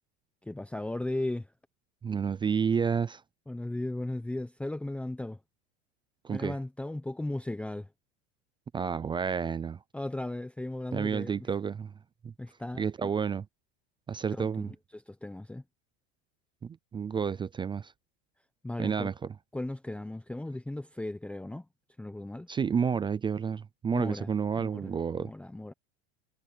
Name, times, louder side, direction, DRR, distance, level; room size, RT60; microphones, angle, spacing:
voice 1, 0.4-1.5 3.5-5.4 6.3-7.9 9.9-11.5 12.4-13.1 14.3-15.6 18.6-19.1 19.5-21.7 22.0-22.5 23.9-25.7, left 1 dB, 5° left, 1.0 m, -36 dB
voice 2, 2.0-3.2 6.2-6.5 8.7-9.8 10.9-11.9 12.2-12.3 12.8-13.5 14.1-14.7 16.6-17.9 18.8-19.1 22.5-25.3, right 6 dB, 15° right, 0.5 m, -30 dB
supercardioid pair, 135°, 32 cm